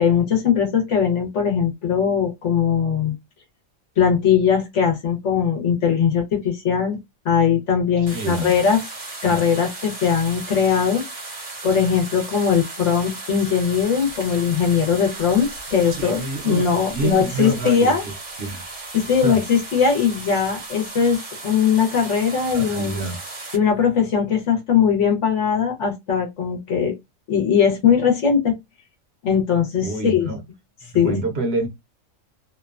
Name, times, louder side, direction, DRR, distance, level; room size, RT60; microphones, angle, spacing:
voice 1, 0.0-3.1 4.0-7.0 7.2-8.8 9.2-11.0 11.6-18.0 18.9-23.0 23.5-26.9 27.3-28.6 29.2-30.3 30.9-31.2, left 7 dB, 70° left, 1.1 m, -20 dB
sound 1, 8.1-23.6, right 2 dB, 35° right, 0.7 m, -36 dB
voice 2, 8.1-8.5 9.2-9.4 16.9-18.1 18.4-18.6 19.2-19.4 22.5-23.2 29.8-30.4 30.9-31.7, right 2 dB, 60° right, 1.0 m, -26 dB
sound 2, 14.1-14.2 14.7-14.9 15.4-17.7 18.5-19.0, right 4 dB, 90° right, 1.1 m, -33 dB
2.9 x 2.2 x 2.3 m
omnidirectional pair, 1.3 m